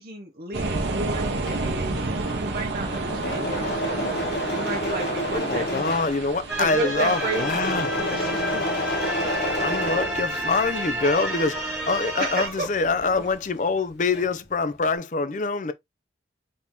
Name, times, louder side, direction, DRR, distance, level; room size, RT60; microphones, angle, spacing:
voice 1, 0.0-4.1 4.5-6.0 6.6-8.5 12.2-12.7, right 1 dB, 50° right, 0.7 m, -32 dB
sound 1, 0.5-13.3, right 3 dB, 75° right, 1.0 m, -32 dB
Engine / Mechanisms, 1.2-10.8 11.1-13.5 13.8-14.5, equal, 65° left, 1.0 m, -30 dB
voice 2, 5.3-7.9 9.6-15.7, left 4 dB, 45° left, 0.5 m, -25 dB
sound 2, 6.5-12.5, right 1 dB, 5° right, 1.4 m, -30 dB
4.2 x 2.9 x 3.5 m
head